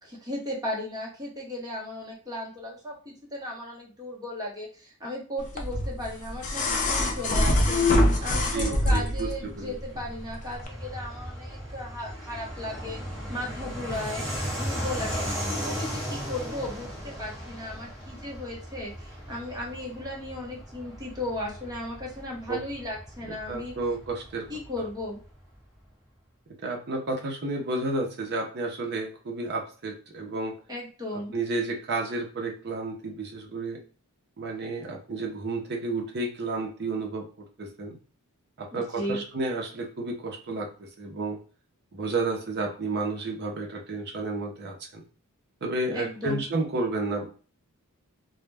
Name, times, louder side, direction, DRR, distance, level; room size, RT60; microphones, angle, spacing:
voice 1, 0.0-7.9 8.2-13.0 13.3-14.2 14.5-23.7 24.5-25.2 30.7-31.4 38.7-39.2 45.9-46.4, left 1 dB, 15° right, -3 dB, 0.8 m, -36 dB
sound 1, 5.6-9.3 10.6-10.7, left 1 dB, 35° left, 0.4 m, -24 dB
voice 2, 8.5-9.7 22.5-22.6 23.5-24.5 26.6-30.5 31.3-33.8 34.4-38.0 38.6-41.4 41.9-45.0 45.6-47.3, right 2 dB, 45° right, 2 dB, 0.6 m, -31 dB
Fixed-wing aircraft airplane, 9.1-25.3, equal, ahead, 1.3 m, -37 dB
2.2 x 2.1 x 3.2 m, 0.38 s
head